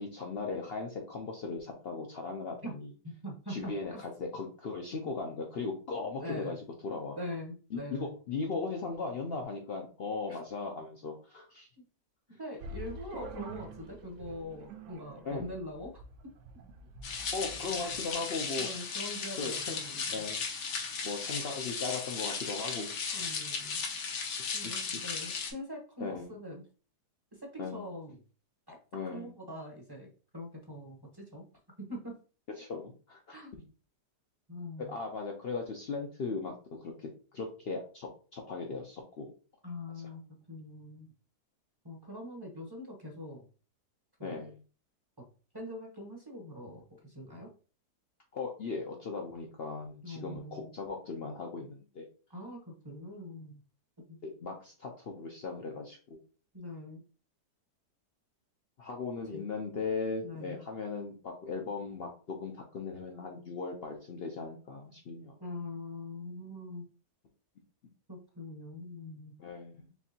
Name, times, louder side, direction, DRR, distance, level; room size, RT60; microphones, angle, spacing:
voice 1, 0.0-2.6 3.5-6.6 6.8-7.2 7.7-11.7 15.2-15.6 17.3-18.7 19.4-19.8 20.1-20.4 21.0-23.3 26.0-26.4 27.6-27.9 28.9-29.3 32.6-33.4 34.8-39.3 40.0-40.1 44.2-44.6 48.3-52.1 54.2-56.2 58.8-65.3 69.4-69.9, left 4 dB, 70° left, 2 dB, 0.5 m, -38 dB
voice 2, 3.0-4.0 6.2-6.6 7.2-8.1 10.3-10.4 11.8-11.9 12.4-16.0 17.8-17.9 18.6-20.2 23.1-23.8 24.5-26.6 27.4-28.2 28.7-28.8 29.0-31.4 31.8-32.1 33.3-33.5 34.5-34.9 39.6-41.1 41.8-43.4 44.2-44.5 45.5-47.5 50.0-50.7 52.3-53.6 54.1-54.2 56.5-57.0 59.3-59.5 60.2-60.6 65.4-66.9 68.1-69.3, left 1 dB, 20° right, -2 dB, 0.7 m, -43 dB
sound 1, 12.6-18.1, right 2 dB, 70° right, 0.7 m, -47 dB
sound 2, 17.0-25.5, left 5 dB, 85° left, 1.5 m, -36 dB
4.5 x 3.3 x 2.7 m, 0.38 s
omnidirectional pair, 1.8 m